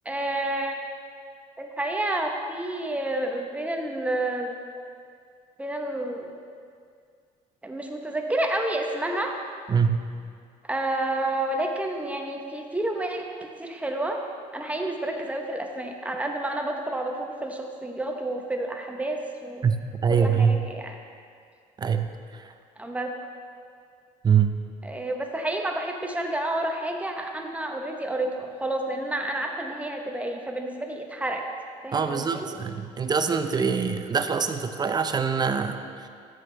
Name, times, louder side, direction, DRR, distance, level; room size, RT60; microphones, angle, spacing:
voice 1, 0.0-0.9 1.6-4.6 5.6-6.3 7.6-9.3 10.7-14.2 14.5-19.6 20.1-20.9 22.8-23.1 24.8-31.5 31.8-32.5, right 1 dB, 10° right, 2 dB, 0.9 m, -30 dB
voice 2, 9.7-10.1 19.6-20.6 21.8-22.5 24.2-24.5 31.9-36.1, right 6 dB, 30° right, 8 dB, 0.5 m, -24 dB
14.0 x 6.1 x 3.3 m, 2.2 s
cardioid pair, 115°, 15 cm